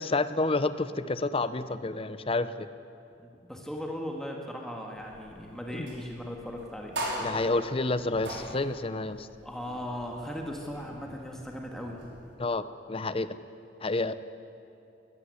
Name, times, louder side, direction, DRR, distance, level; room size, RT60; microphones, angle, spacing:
voice 1, 0.0-2.7 5.7-5.9 7.2-9.3 12.4-13.4 13.8-14.1, left 2 dB, 30° left, 13 dB, 0.7 m, -29 dB
voice 2, 3.2-7.0 9.4-12.0, equal, 5° left, 0 dB, 1.8 m, -38 dB
sound 1, 5.0-12.3, right 1 dB, 85° right, 5.4 m, -41 dB
20.5 x 14.5 x 9.7 m, 2.7 s
head